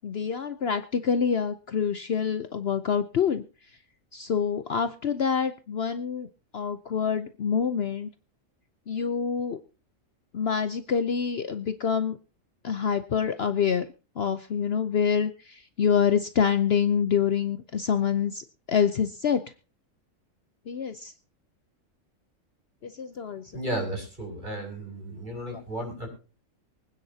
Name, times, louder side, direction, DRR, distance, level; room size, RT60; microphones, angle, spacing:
voice 1, 0.0-3.4 4.1-6.3 6.5-8.1 8.9-9.6 10.3-12.2 12.6-13.8 14.2-19.4 20.7-21.1 22.8-23.4 25.5-25.6, left 7 dB, 55° left, 10 dB, 0.9 m, -26 dB
voice 2, 23.5-26.1, right 1 dB, 35° right, 1 dB, 6.2 m, -34 dB
24.5 x 9.7 x 2.8 m, 0.35 s
omnidirectional pair, 1.4 m